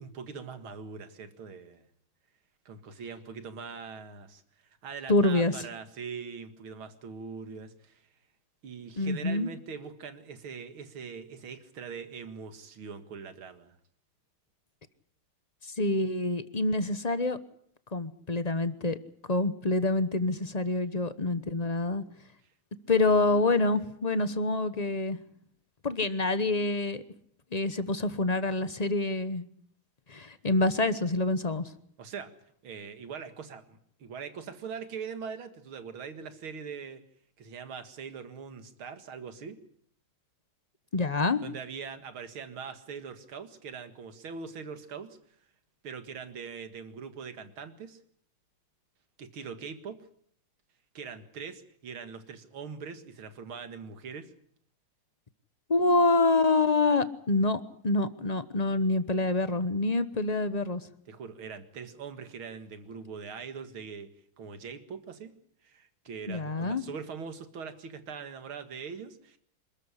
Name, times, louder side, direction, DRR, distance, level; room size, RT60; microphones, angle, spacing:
voice 1, 0.0-1.9 2.7-4.4 4.8-8.0 8.6-13.8 32.0-32.3 32.6-37.0 37.4-39.6 41.4-45.2 45.8-48.0 49.2-50.0 50.9-54.3 61.1-64.1 64.4-65.3 65.6-69.4, right 6 dB, 75° right, 9 dB, 2.7 m, -42 dB
voice 2, 5.1-5.5 9.0-9.5 15.6-17.4 17.9-19.0 19.3-22.0 22.9-25.2 25.8-27.0 27.5-29.4 30.1-31.7 40.9-41.4 55.7-60.8 66.3-66.8, left 2 dB, 35° left, 12 dB, 0.7 m, -26 dB
26.5 x 13.5 x 9.9 m, 0.65 s
omnidirectional pair, 2.3 m